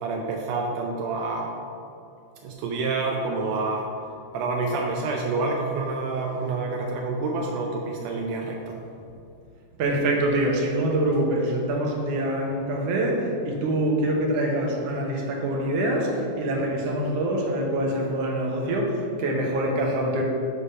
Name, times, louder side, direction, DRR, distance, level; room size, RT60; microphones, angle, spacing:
voice 1, 0.0-1.6 2.4-3.9 4.3-8.8, right 3 dB, 80° right, 0 dB, 1.5 m, -28 dB
voice 2, 9.8-20.2, right 1 dB, 65° right, 0 dB, 1.7 m, -25 dB
6.6 x 3.4 x 5.5 m, 2.6 s
omnidirectional pair, 3.5 m